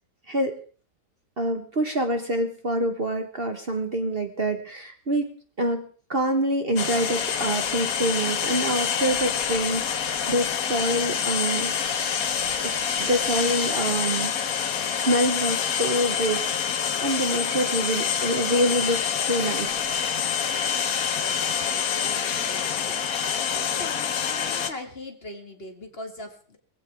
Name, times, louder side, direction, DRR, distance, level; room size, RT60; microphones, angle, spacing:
voice 1, 1.4-5.3 5.6-11.7 12.6-14.3 14.9-16.8 17.0-19.9, right 1 dB, 35° right, 6 dB, 1.5 m, -26 dB
sound 1, 6.8-24.7, left 7 dB, 60° left, 1.4 m, -26 dB
voice 2, 21.1-23.0 23.5-26.6, left 1 dB, 35° left, 4 dB, 2.2 m, -41 dB
21.5 x 15.5 x 3.6 m, 0.42 s
omnidirectional pair, 1.8 m